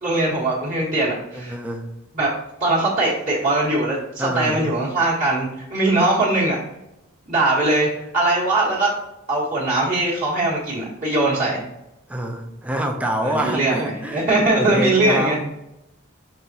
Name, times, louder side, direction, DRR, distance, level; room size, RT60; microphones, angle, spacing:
voice 1, 0.0-1.6 2.1-2.3 2.6-6.6 7.3-8.9 9.3-11.6 13.2-15.4, right 2 dB, 35° right, -8 dB, 1.2 m, -21 dB
voice 2, 1.3-1.9 4.2-4.6 12.1-15.4, equal, 5° right, 2 dB, 0.5 m, -26 dB
5.5 x 3.4 x 2.8 m, 0.88 s
head